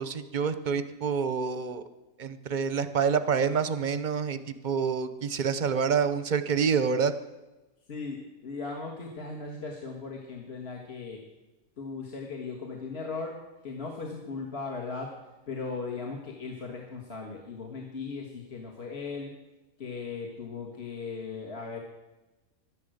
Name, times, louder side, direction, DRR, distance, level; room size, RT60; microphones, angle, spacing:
voice 1, 0.0-1.8 2.2-4.4 4.6-7.1, right 6 dB, 45° right, 11 dB, 0.7 m, -27 dB
voice 2, 7.9-11.2 11.8-13.4 13.6-15.1 15.5-19.3 19.8-21.8, left 4 dB, 50° left, 0 dB, 1.7 m, -37 dB
11.5 x 11.0 x 7.8 m, 1.1 s
omnidirectional pair, 1.5 m